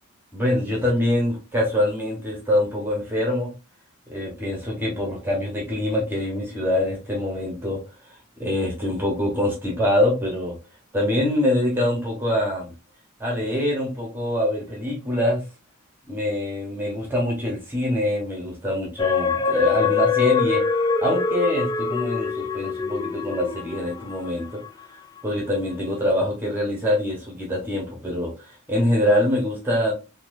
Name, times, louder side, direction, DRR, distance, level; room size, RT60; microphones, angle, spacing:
voice 1, 0.3-3.5 4.1-7.8 8.4-10.6 10.9-12.7 13.2-15.4 16.1-20.6 21.0-24.6 25.2-29.9, left 1 dB, 10° right, -2 dB, 1.1 m, -24 dB
sound 1, 19.0-24.7 25.2-25.3, left 5 dB, 20° left, 0.3 m, -24 dB
4.0 x 2.8 x 2.6 m, 0.29 s
head